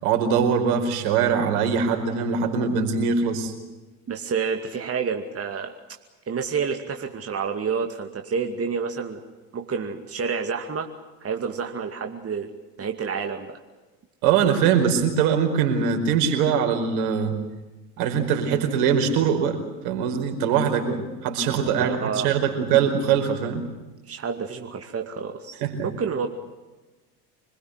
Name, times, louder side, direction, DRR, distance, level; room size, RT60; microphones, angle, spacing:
voice 1, 0.0-3.5 14.2-17.4 18.0-23.6 25.6-25.9, right 7 dB, 70° right, 4 dB, 5.0 m, -22 dB
voice 2, 4.1-5.8 6.3-9.2 9.5-10.9 11.2-12.5 12.8-13.6 21.5-22.5 24.1-26.3, right 6 dB, 30° right, 4 dB, 2.4 m, -29 dB
26.0 x 21.5 x 8.1 m, 1.2 s
hypercardioid pair, 70°, 46 cm